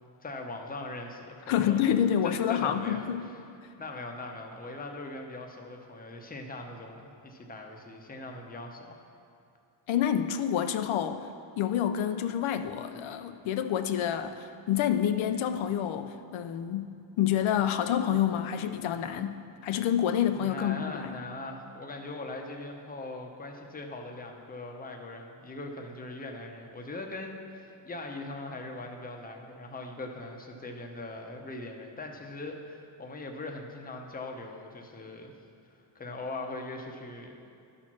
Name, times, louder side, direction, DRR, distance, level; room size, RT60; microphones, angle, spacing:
voice 1, 0.2-3.4 3.8-9.0 20.3-35.3 35.9-37.5, left 2 dB, 20° left, 2 dB, 0.8 m, -41 dB
voice 2, 1.5-3.3 9.9-11.3 11.6-21.1, left 9 dB, 85° left, 9 dB, 0.6 m, -28 dB
12.0 x 4.4 x 6.0 m, 2.5 s
wide cardioid pair, 135°, 47 cm